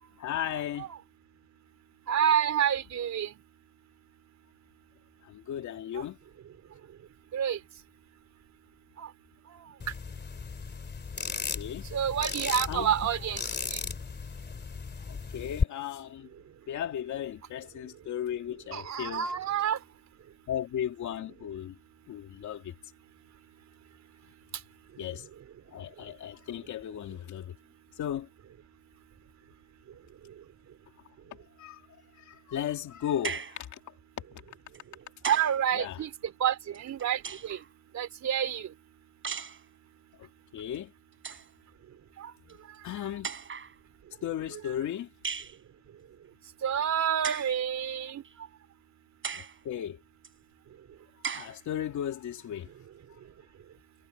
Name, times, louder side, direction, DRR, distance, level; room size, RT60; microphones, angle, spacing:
voice 1, 0.2-0.9 5.2-6.2 11.3-11.9 12.7-12.9 14.3-14.4 15.1-16.3 16.7-19.2 20.5-21.7 22.1-22.7 25.0-25.3 25.7-27.5 28.0-28.3 31.6-31.8 32.1-33.8 35.7-36.0 40.2-40.3 40.5-40.9 42.5-42.6 42.8-43.3 44.2-45.1 49.3-50.0 51.3-52.7, left 10 dB, 75° left, 2.5 m, -35 dB
voice 2, 2.1-3.3 6.0-6.1 7.3-7.6 9.0-9.1 11.9-13.4 13.7-13.8 18.7-19.8 35.2-36.1 36.4-37.6 37.9-38.7 42.2-42.3 44.5-44.6 46.6-48.2, right 9 dB, 65° right, 3.7 m, -28 dB
sound 1, 9.8-15.6, left 5 dB, 35° left, 2.5 m, -35 dB
sound 2, 33.2-33.7 34.7-35.6 36.7-37.7 39.2-39.6 40.7-40.8 41.1-41.5 42.5-42.6 43.2-43.7 45.2-45.6 47.2-47.6 48.2-48.3 49.2-49.6 50.2-50.3 51.2-51.6, right 6 dB, 40° right, 5.1 m, -37 dB
cardioid pair, 90°, 30 cm